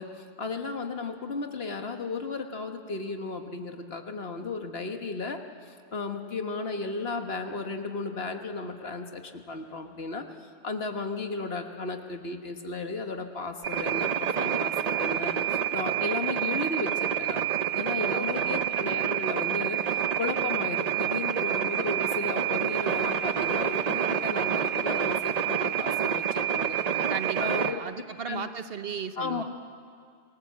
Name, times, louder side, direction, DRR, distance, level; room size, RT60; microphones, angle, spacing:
voice 1, 0.0-26.8 27.4-27.8 28.3-28.5 29.2-29.4, left 3 dB, 60° left, 5 dB, 1.6 m, -35 dB
sound 1, 13.6-27.7, right 8 dB, 40° right, 0.7 m, -28 dB
voice 2, 18.0-18.7 27.1-29.4, right 6 dB, 60° right, 10 dB, 1.1 m, -36 dB
27.0 x 19.5 x 7.5 m, 2.2 s
omnidirectional pair, 1.2 m